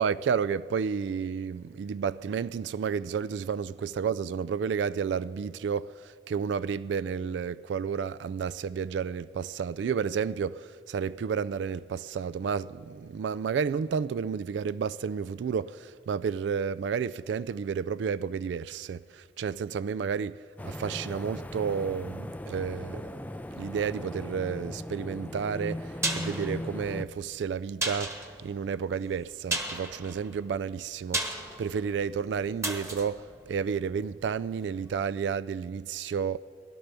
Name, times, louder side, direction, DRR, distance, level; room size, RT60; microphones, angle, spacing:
voice 1, 0.0-23.2 23.5-36.4, right 6 dB, 80° right, 0.3 m, -31 dB
sound 1, 20.6-27.0, left 1 dB, 10° left, 0.3 m, -38 dB
sound 2, 25.8-34.5 34.8-34.9, right 2 dB, 15° right, 1.2 m, -36 dB
16.5 x 11.5 x 6.8 m
head